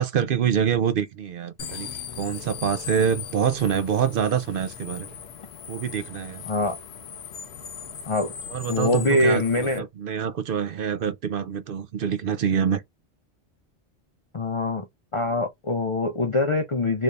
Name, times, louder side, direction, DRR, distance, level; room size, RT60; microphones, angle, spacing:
voice 1, 0.0-1.9 2.2-5.1 5.7-6.4 8.5-12.8, right 8 dB, 60° right, 0.7 m, -25 dB
sound 1, 1.6-9.8, left 8 dB, 75° left, 0.9 m, -39 dB
voice 2, 6.5-6.8 8.1-8.3 8.7-9.8 14.3-14.9 15.1-17.0, left 2 dB, 45° left, 0.4 m, -23 dB
3.1 x 2.6 x 3.3 m
omnidirectional pair, 1.1 m